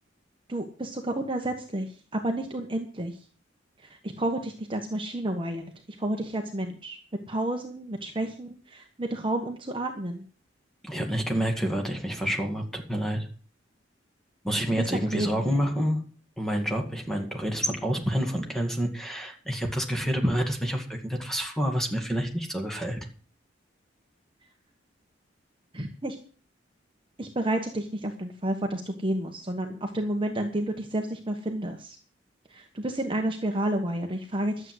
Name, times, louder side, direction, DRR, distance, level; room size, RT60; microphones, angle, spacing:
voice 1, 0.5-3.2 3.8-5.6 6.0-7.0 7.3-10.2 14.8-15.6 25.7-26.2 27.2-32.0 32.5-34.7, right 1 dB, 30° right, 3 dB, 1.3 m, -30 dB
voice 2, 10.8-13.3 14.4-16.0 16.4-23.1, equal, ahead, 2 dB, 2.2 m, -28 dB
12.0 x 7.8 x 7.9 m, 0.41 s
head